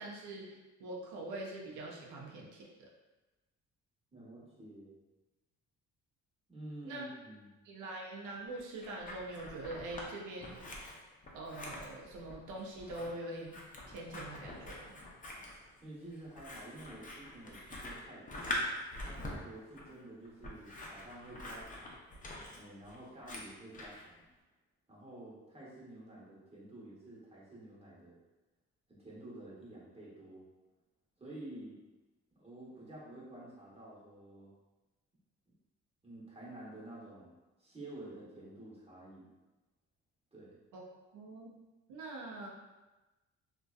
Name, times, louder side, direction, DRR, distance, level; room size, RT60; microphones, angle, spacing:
voice 1, 0.0-2.9 6.8-7.0 7.6-10.6 11.3-13.6 13.9-15.0 40.7-40.8 41.1-41.5 41.9-42.5, right 2 dB, 80° right, -2 dB, 0.5 m, -44 dB
voice 2, 4.1-5.0 6.5-7.5 15.8-18.5 19.0-22.0 22.5-24.2 24.9-28.2 28.9-30.4 31.2-31.8 32.4-34.5 36.0-37.3 37.6-39.3 40.3-40.6, right 1 dB, 20° right, -7 dB, 1.0 m, -50 dB
Scissors, 8.5-10.1 10.4-24.0, left 1 dB, 30° left, 0.5 m, -44 dB
2.6 x 2.2 x 2.3 m, 1.1 s
cardioid pair, 90°, 30 cm